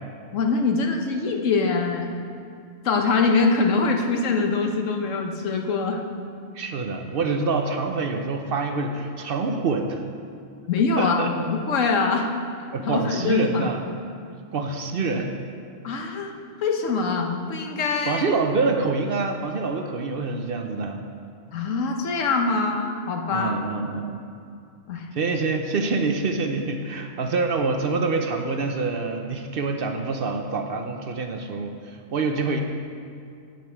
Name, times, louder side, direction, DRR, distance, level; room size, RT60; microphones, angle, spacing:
voice 1, 0.3-2.1 2.8-6.0 10.7-12.3 12.9-13.7 15.8-16.3 16.6-18.2 21.5-23.6 24.9-25.1 32.4-32.6, left 4 dB, 85° left, 3 dB, 1.3 m, -23 dB
voice 2, 6.5-10.0 11.0-11.5 12.7-13.9 14.5-15.3 18.1-21.0 23.3-24.2 25.1-32.6, right 3 dB, 55° right, 5 dB, 0.8 m, -26 dB
9.3 x 8.3 x 4.6 m, 2.4 s
omnidirectional pair, 1.3 m